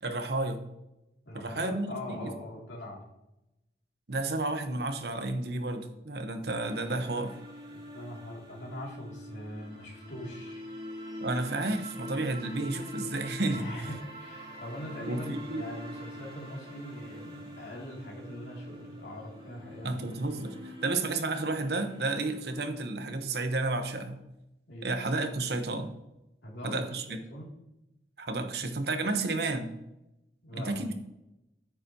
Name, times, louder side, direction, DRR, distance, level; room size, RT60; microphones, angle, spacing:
voice 1, 0.0-0.6 1.3-2.3 4.1-7.3 11.2-13.9 15.0-15.7 19.8-24.2 24.8-25.9 26.6-27.0 28.2-29.7 30.5-30.9, right 2 dB, 65° right, 8 dB, 1.0 m, -31 dB
voice 2, 1.2-3.0 7.7-10.6 13.5-20.2 24.7-24.9 26.4-27.5 30.4-30.9, left 1 dB, 80° left, -2 dB, 2.6 m, -42 dB
sound 1, 6.6-22.8, left 1 dB, 25° right, 3.4 m, -45 dB
9.1 x 8.0 x 2.8 m, 0.89 s
head